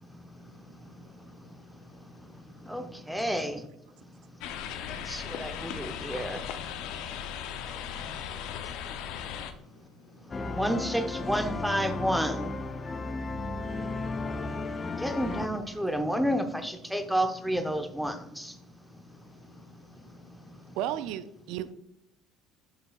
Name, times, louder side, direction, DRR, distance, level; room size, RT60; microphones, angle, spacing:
voice 1, 0.0-2.9 4.0-6.0 6.8-10.6 13.0-15.2 18.6-20.8, left 1 dB, 85° left, 4 dB, 1.4 m, -59 dB
voice 2, 2.6-3.6 5.1-6.4 10.5-12.5 15.0-18.5, equal, ahead, 8 dB, 0.8 m, -30 dB
sound 1, 4.4-9.5, left 8 dB, 70° left, 0.6 m, -37 dB
sound 2, 10.3-15.5, left 3 dB, 30° left, 0.6 m, -34 dB
voice 3, 20.8-21.7, right 11 dB, 70° right, 14 dB, 0.4 m, -34 dB
7.8 x 6.5 x 2.4 m, 0.80 s
hypercardioid pair, 70°, 0 cm